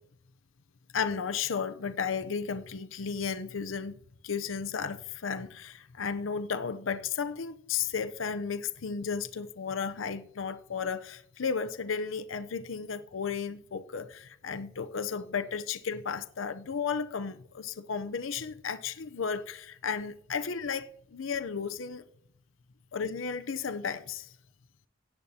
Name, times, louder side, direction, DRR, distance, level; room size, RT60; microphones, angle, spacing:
voice 1, 0.9-22.0 22.9-24.3, left 6 dB, 80° left, 0.6 m, -34 dB
17.0 x 10.0 x 2.8 m
head